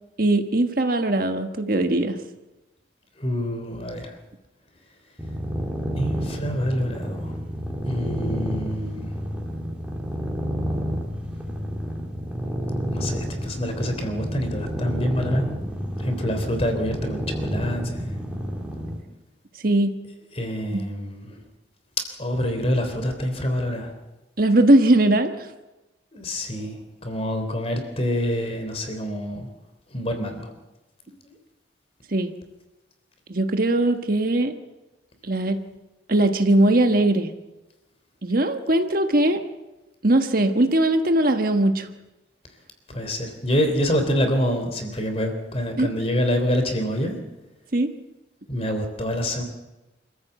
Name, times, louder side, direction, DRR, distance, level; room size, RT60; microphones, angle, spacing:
voice 1, 0.2-2.2 19.6-20.0 20.7-20.8 24.4-25.5 32.1-32.3 33.3-34.5 35.2-35.6 36.1-37.3 38.2-39.4 40.0-41.9 45.8-45.9 47.7-47.9, right 1 dB, 50° right, 6 dB, 1.4 m, -20 dB
voice 2, 3.2-4.1 6.0-7.3 7.8-9.1 12.9-15.5 16.0-18.2 20.4-21.3 22.2-23.9 26.1-29.5 29.9-30.5 31.1-31.3 42.9-47.2 48.5-49.4, equal, 30° left, 6 dB, 3.4 m, -26 dB
sound 1, 5.2-19.0, equal, 5° right, 3.3 m, -30 dB
26.5 x 14.5 x 8.1 m, 1.0 s
head